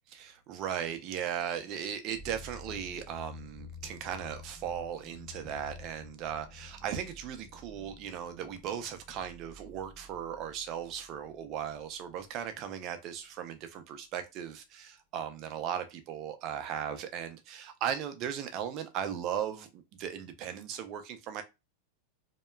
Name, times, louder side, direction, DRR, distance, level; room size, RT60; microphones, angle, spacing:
voice 1, 0.1-21.4, right 9 dB, 45° right, 0.5 m, -37 dB
sound 1, 2.1-12.5, left 3 dB, 15° left, 1.0 m, -51 dB
2.8 x 2.1 x 2.2 m
hypercardioid pair, 120°, 0 cm